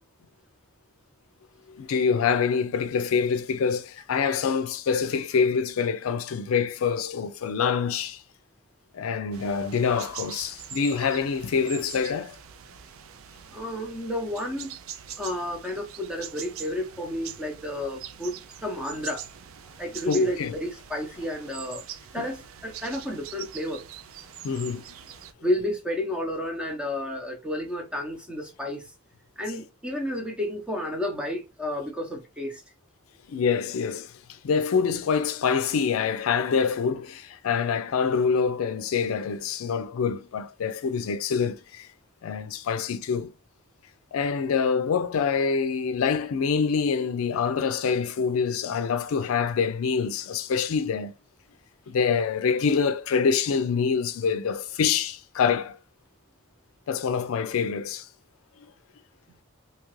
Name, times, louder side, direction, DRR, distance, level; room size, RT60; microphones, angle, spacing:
voice 1, 1.7-8.2 8.9-12.4 20.1-20.5 22.2-22.3 24.4-24.8 33.3-41.9 42.2-43.3 44.1-51.1 51.9-55.8 56.9-58.1, left 6 dB, 85° left, 0.4 m, -26 dB
sound 1, 9.3-25.3, right 9 dB, 80° right, 0.4 m, -43 dB
voice 2, 13.5-14.8 15.2-19.2 19.8-21.9 22.1-23.8 25.4-28.9 29.4-32.6, left 1 dB, 5° right, 0.7 m, -31 dB
2.8 x 2.5 x 3.0 m
head